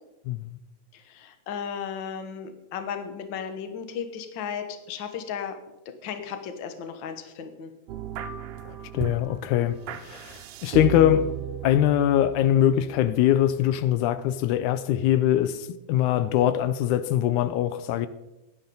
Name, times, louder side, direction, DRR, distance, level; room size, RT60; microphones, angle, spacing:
voice 1, 0.3-0.6 8.7-11.3 11.6-18.1, left 11 dB, 85° left, 2.0 m, -23 dB
voice 2, 0.9-5.6 6.0-7.7, left 7 dB, 55° left, 1.4 m, -35 dB
sound 1, 7.9-13.8, right 10 dB, 70° right, 1.5 m, -36 dB
16.0 x 11.5 x 3.9 m
omnidirectional pair, 3.4 m